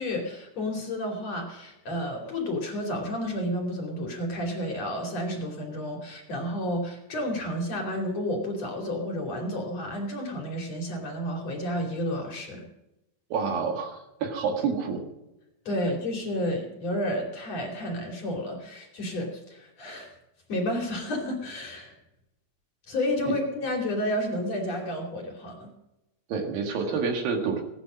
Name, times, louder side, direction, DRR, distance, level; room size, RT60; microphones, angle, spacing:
voice 1, 0.0-12.7 15.7-20.1 20.5-21.9 22.9-25.7, left 1 dB, 45° left, 0 dB, 3.6 m, -31 dB
voice 2, 13.3-15.0 23.2-23.3 26.3-27.6, right 5 dB, 70° right, 3 dB, 3.7 m, -28 dB
17.5 x 11.0 x 6.2 m, 0.92 s
omnidirectional pair, 4.4 m